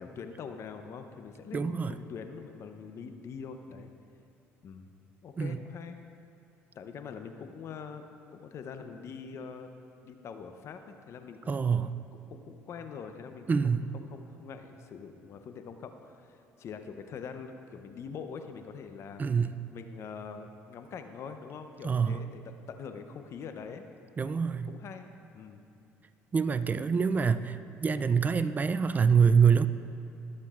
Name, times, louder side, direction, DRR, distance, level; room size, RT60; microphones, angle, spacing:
voice 1, 0.0-3.9 4.6-4.9 5.2-6.0 6.7-8.0 8.3-9.7 10.0-11.7 12.3-19.2 19.7-23.8 24.6-25.6 26.9-27.1, left 6 dB, 55° left, 7 dB, 0.7 m, -44 dB
voice 2, 1.5-1.9 5.4-5.6 11.5-11.9 13.5-13.8 19.2-19.6 21.8-22.2 24.2-24.7 26.3-29.7, right 6 dB, 30° right, 13 dB, 0.4 m, -25 dB
18.5 x 7.5 x 2.5 m, 2.6 s
supercardioid pair, 80°, 6 cm